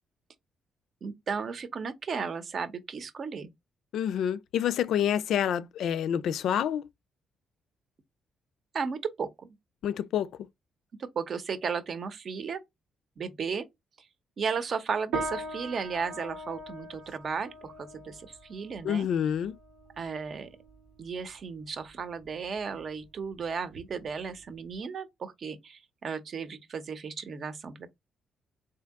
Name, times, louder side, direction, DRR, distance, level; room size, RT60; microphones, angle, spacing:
voice 1, 1.0-3.5 8.7-9.6 11.0-12.6 13.2-13.6 14.0-14.1 14.4-19.1 20.0-20.5 21.0-27.9, right 5 dB, 50° right, 0.7 m, -35 dB
voice 2, 3.9-6.8 9.8-10.3 18.8-19.6, left 9 dB, 75° left, 0.3 m, -28 dB
sound 1, 15.1-24.8, right 2 dB, 85° right, 0.9 m, -41 dB
3.4 x 2.8 x 3.5 m
cardioid pair, 90°, 0 cm